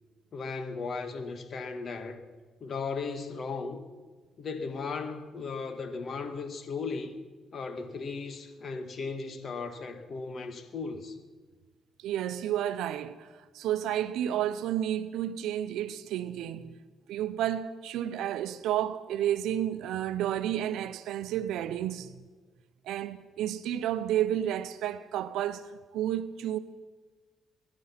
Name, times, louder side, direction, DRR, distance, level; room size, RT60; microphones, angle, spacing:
voice 1, 0.3-2.2 2.6-3.8 4.4-7.1 7.5-11.1, left 4 dB, 50° left, 1.7 m, -36 dB
voice 2, 12.0-16.7 17.1-22.2 22.8-26.6, right 11 dB, 85° right, 0.6 m, -31 dB
21.0 x 11.5 x 5.8 m
cardioid pair, 90°, 0 cm